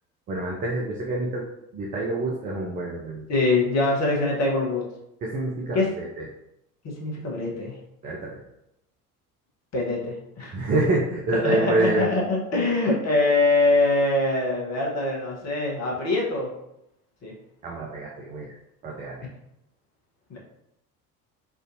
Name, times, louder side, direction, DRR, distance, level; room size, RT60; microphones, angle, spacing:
voice 1, 0.3-1.5 1.7-3.2 5.2-6.2 8.0-8.4 10.5-12.1 17.6-18.5 18.8-19.2, right 2 dB, 20° right, -2 dB, 0.3 m, -27 dB
voice 2, 3.3-4.8 5.7-5.9 7.0-7.7 9.7-10.7 11.3-16.5 17.2-17.3 20.3-20.4, left 2 dB, 35° left, -2 dB, 1.0 m, -23 dB
3.5 x 2.5 x 2.6 m, 0.83 s
figure-of-eight pair, 60°, 47 cm